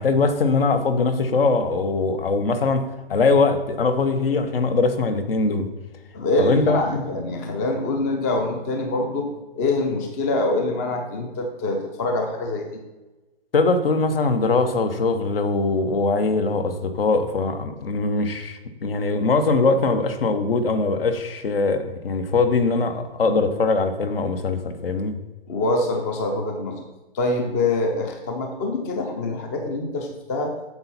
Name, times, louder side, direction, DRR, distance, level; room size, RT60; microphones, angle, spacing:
voice 1, 0.0-2.8 3.1-5.7 6.4-7.0 13.5-25.2, left 3 dB, 65° left, 9 dB, 1.2 m, -21 dB
voice 2, 6.1-12.8 25.5-26.9 27.1-30.6, left 2 dB, 15° left, 4 dB, 0.5 m, -25 dB
8.6 x 7.1 x 4.2 m, 1.1 s
hypercardioid pair, 155°, 31 cm